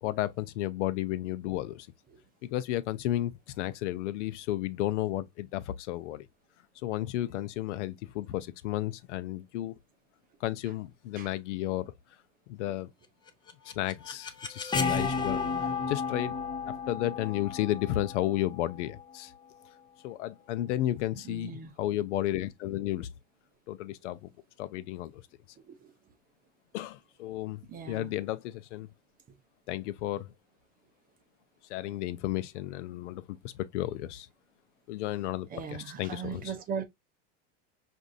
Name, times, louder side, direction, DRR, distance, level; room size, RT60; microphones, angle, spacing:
voice 1, 0.0-1.9 2.4-3.3 3.6-6.3 6.8-9.7 10.4-11.9 12.5-12.9 13.8-15.4 15.9-16.3 16.7-19.3 20.0-21.5 21.8-23.1 23.7-24.3 24.6-25.2 26.7-28.9 29.7-30.3 31.7-34.3 34.9-36.5, left 14 dB, 80° left, 0.6 m, -33 dB
sound 1, 13.3-19.1, left 5 dB, 15° left, 0.6 m, -33 dB
voice 2, 21.2-21.7 25.7-25.9 27.7-28.1 35.5-36.8, right 7 dB, 25° right, 0.7 m, -39 dB
6.0 x 2.6 x 2.6 m
supercardioid pair, 135°, 35 cm